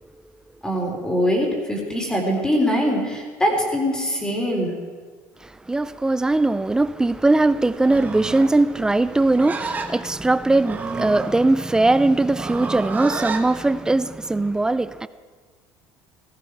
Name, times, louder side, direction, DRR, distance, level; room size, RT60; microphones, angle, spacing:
voice 1, 0.6-4.7, equal, 10° left, 4.1 m, -22 dB
voice 2, 5.4-15.1, right 2 dB, 10° right, 0.4 m, -20 dB
Livestock farm animals working animals, 7.8-13.5, right 4 dB, 25° right, 1.5 m, -31 dB
17.5 x 14.5 x 4.8 m
cardioid pair, 120°, 7 cm